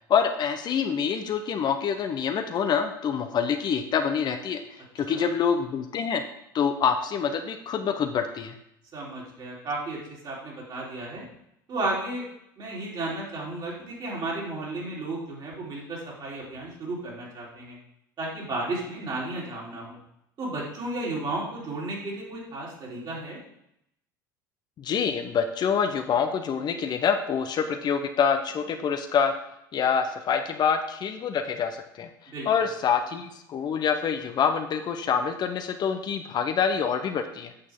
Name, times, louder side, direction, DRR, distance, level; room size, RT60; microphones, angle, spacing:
voice 1, 0.1-4.6 4.9-6.2 6.5-8.6 24.8-29.4 29.7-32.1 32.5-37.5, left 7 dB, 40° left, 7 dB, 0.8 m, -26 dB
voice 2, 8.9-10.0 10.2-11.2 11.7-12.2 12.6-17.8 18.2-20.0 20.4-23.4 32.3-32.5, right 2 dB, 40° right, -4 dB, 3.4 m, -33 dB
8.8 x 6.4 x 3.7 m, 0.79 s
hypercardioid pair, 75°, 11 cm